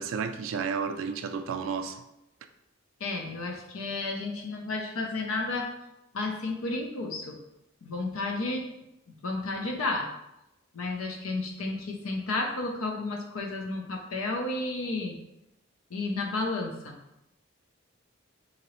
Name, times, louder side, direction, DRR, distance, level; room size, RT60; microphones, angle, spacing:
voice 1, 0.0-2.0, right 6 dB, 70° right, 0.3 m, -32 dB
voice 2, 3.0-5.7 6.1-7.4 7.8-8.7 9.2-10.1 10.7-15.2 15.9-17.0, left 2 dB, 90° left, 0.5 m, -32 dB
3.9 x 2.9 x 3.0 m
head